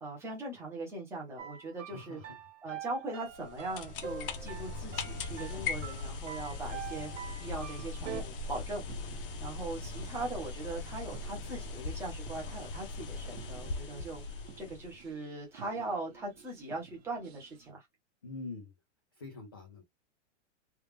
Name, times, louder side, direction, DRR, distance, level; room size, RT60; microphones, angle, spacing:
voice 1, 0.0-2.2 2.6-7.1 7.4-8.8 9.4-14.2 14.6-17.8, right 2 dB, 5° right, 0.8 m, -40 dB
sound 1, 1.4-8.2, right 8 dB, 85° right, 1.3 m, -45 dB
voice 2, 1.9-2.2 6.9-7.1 9.7-9.9 18.2-18.7 19.2-19.8, left 3 dB, 20° left, 0.3 m, -45 dB
sound 2, 3.3-15.1, left 4 dB, 50° left, 0.7 m, -40 dB
sound 3, 7.1-17.7, right 8 dB, 60° right, 1.3 m, -55 dB
3.5 x 2.4 x 3.1 m
supercardioid pair, 180°, 36 cm